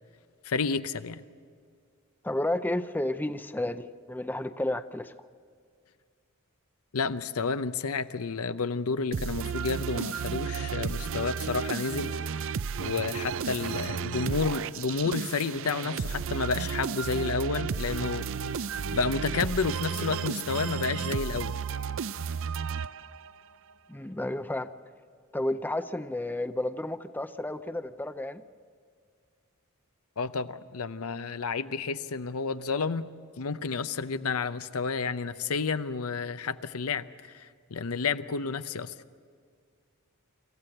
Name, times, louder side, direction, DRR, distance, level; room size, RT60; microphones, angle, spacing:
voice 1, 0.4-1.2 6.9-12.1 12.8-18.3 18.9-21.6 30.2-33.1 33.4-38.9, left 4 dB, 75° left, 12 dB, 0.7 m, -30 dB
voice 2, 2.2-5.1 23.9-24.7 25.3-28.4, left 1 dB, 10° left, 11 dB, 0.5 m, -31 dB
sound 1, 9.1-23.4, right 6 dB, 65° right, 0.5 m, -33 dB
26.5 x 14.5 x 7.9 m, 2.1 s
head